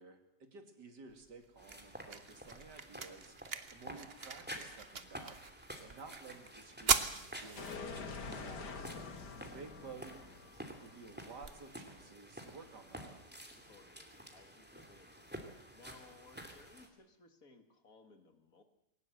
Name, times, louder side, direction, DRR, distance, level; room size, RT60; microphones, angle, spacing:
voice 1, 0.0-9.0 9.4-13.2, right 4 dB, 90° right, 6 dB, 3.1 m, -54 dB
sound 1, 1.1-13.1, right 5 dB, 40° right, 1.2 m, -42 dB
sound 2, 1.6-16.9, equal, 5° right, 2.7 m, -51 dB
sound 3, 7.5-12.3, left 4 dB, 80° left, 2.4 m, -47 dB
voice 2, 13.6-15.4 15.7-18.6, left 3 dB, 55° left, 7 dB, 2.4 m, -61 dB
21.0 x 18.5 x 8.0 m, 0.81 s
omnidirectional pair, 1.8 m